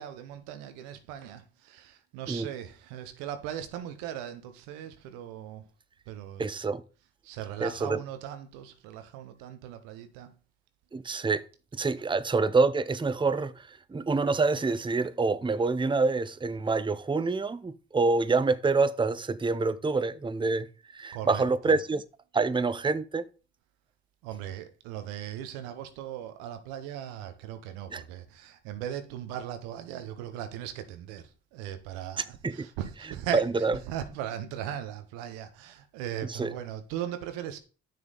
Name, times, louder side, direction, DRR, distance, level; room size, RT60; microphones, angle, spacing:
voice 1, 0.0-5.6 6.1-6.4 7.2-10.3 21.1-21.8 24.2-37.6, right 10 dB, 85° right, 0.9 m, -38 dB
voice 2, 6.4-6.8 7.6-8.0 10.9-11.4 11.7-13.5 13.9-20.7 20.9-22.0 22.3-23.3 27.9-28.0 32.2-32.7 33.3-33.8 36.3-36.5, right 3 dB, 15° right, 0.6 m, -26 dB
8.6 x 6.5 x 3.9 m
hypercardioid pair, 45°, 30 cm